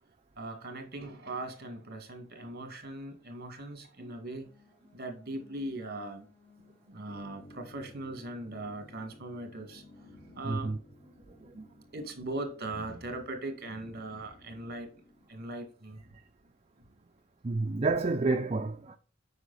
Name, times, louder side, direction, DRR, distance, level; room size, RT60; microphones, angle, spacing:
voice 1, 0.4-4.5 4.9-6.3 6.9-10.7 11.3-11.4 11.9-14.9 15.3-16.2 16.8-16.9, right 2 dB, 55° right, 2.1 m, -40 dB
sound 1, 4.4-10.4, left 5 dB, 10° left, 1.4 m, -61 dB
sound 2, 7.1-15.3, left 1 dB, 70° left, 4.8 m, -56 dB
voice 2, 10.4-10.8 11.4-11.7 17.4-19.0, right 3 dB, 35° right, 0.5 m, -30 dB
8.0 x 5.5 x 4.1 m
head